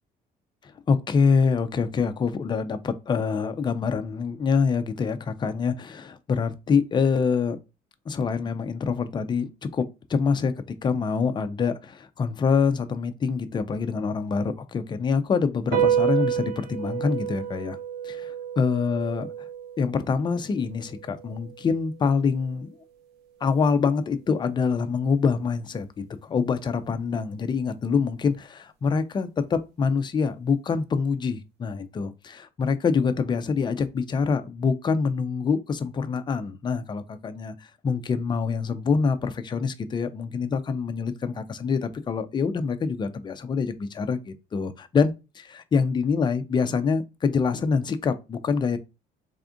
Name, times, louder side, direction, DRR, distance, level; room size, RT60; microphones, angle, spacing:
voice 1, 0.9-7.6 8.1-17.8 18.0-19.3 19.8-22.8 23.4-48.8, left 5 dB, 25° left, 0.4 m, -25 dB
sound 1, 15.7-22.4, right 9 dB, 80° right, 0.6 m, -30 dB
3.4 x 2.4 x 3.7 m
cardioid pair, 110°, 17 cm